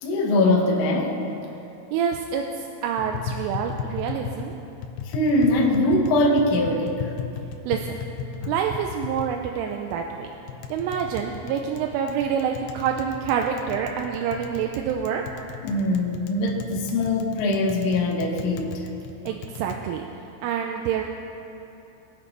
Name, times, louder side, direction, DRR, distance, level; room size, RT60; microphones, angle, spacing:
voice 1, 0.0-1.3 5.1-7.1 8.4-8.5 15.6-18.8, left 1 dB, 70° left, -2 dB, 2.3 m, -22 dB
voice 2, 1.9-4.6 7.7-8.0 8.5-10.3 10.7-15.2 19.3-20.0 20.4-21.0, right 8 dB, 85° right, 2 dB, 3.0 m, -27 dB
Tap, 3.0-19.8, left 7 dB, 90° left, 2.6 m, -36 dB
22.0 x 8.2 x 3.3 m, 2.9 s
omnidirectional pair, 5.8 m